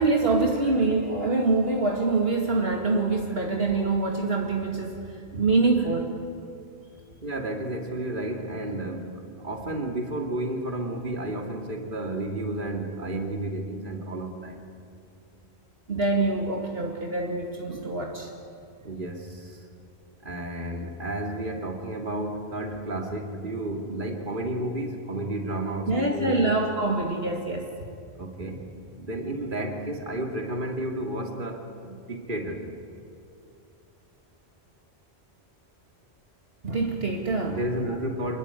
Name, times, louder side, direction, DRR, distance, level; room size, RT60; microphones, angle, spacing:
voice 1, 0.0-6.1 15.9-18.3 25.9-27.7 36.6-37.6, right 3 dB, 65° right, 0 dB, 2.5 m, -25 dB
voice 2, 7.2-14.6 18.8-19.6 20.2-26.5 28.2-28.6 28.9-32.7 37.5-38.4, right 1 dB, 50° right, 3 dB, 2.8 m, -32 dB
27.0 x 20.5 x 9.9 m, 2.5 s
omnidirectional pair, 1.1 m